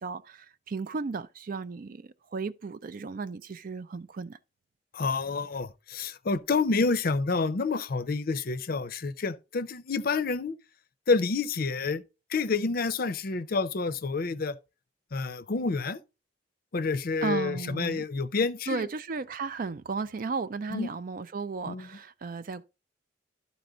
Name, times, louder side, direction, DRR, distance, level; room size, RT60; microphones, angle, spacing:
voice 1, 0.0-4.4 17.2-18.0 18.7-22.6, right 4 dB, 50° right, 0.4 m, -35 dB
voice 2, 4.9-10.5 11.1-12.0 12.3-14.6 15.1-16.0 16.7-18.9 20.7-20.9 21.7-21.9, left 4 dB, 55° left, 0.6 m, -28 dB
12.0 x 4.3 x 3.8 m
head